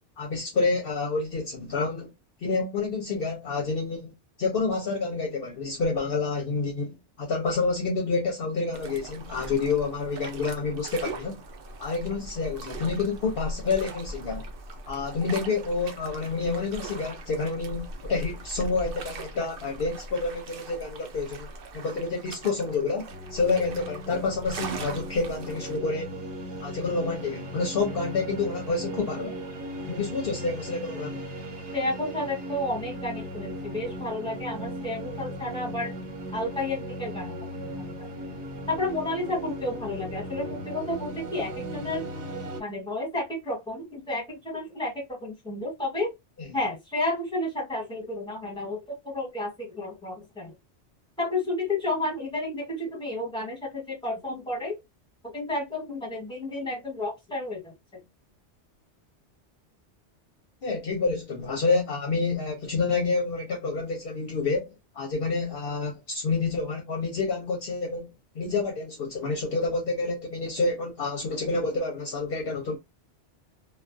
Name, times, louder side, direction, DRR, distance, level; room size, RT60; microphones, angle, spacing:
voice 1, 0.2-2.1 2.4-4.1 4.4-11.4 11.8-14.5 14.9-21.5 21.7-26.2 26.6-29.4 29.9-31.2 46.4-46.5 60.6-68.1 68.3-72.8, left 4 dB, 60° left, 0.8 m, -28 dB
sound 1, 8.7-25.8, right 2 dB, 60° right, 0.7 m, -40 dB
sound 2, 23.1-42.6, right 1 dB, 80° right, 1.2 m, -37 dB
voice 2, 31.7-35.9 36.3-38.0 38.7-42.1 42.6-46.1 46.5-50.5 51.2-54.8 55.3-57.7, left 2 dB, 5° left, 1.1 m, -31 dB
2.2 x 2.2 x 2.5 m
omnidirectional pair, 1.2 m